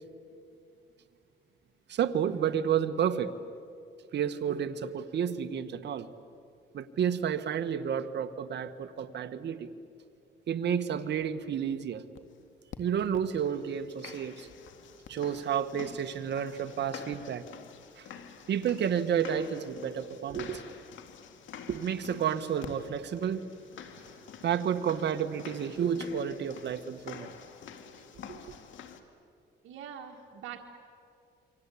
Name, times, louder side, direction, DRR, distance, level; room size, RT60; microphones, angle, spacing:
voice 1, 1.9-3.3 4.1-6.1 6.7-9.7 10.5-12.0 12.8-14.5 15.1-17.4 18.0-18.1 18.5-20.7 21.7-23.4 24.4-27.3 28.3-28.4, right 8 dB, 60° right, 9 dB, 1.4 m, -31 dB
sound 1, 12.2-12.3 12.7-12.8 13.1-29.0, left 7 dB, 75° left, 2.3 m, -48 dB
voice 2, 29.6-30.7, right 8 dB, 80° right, 1 dB, 1.8 m, -43 dB
28.5 x 24.0 x 8.5 m, 2.5 s
cardioid pair, 90°, 20 cm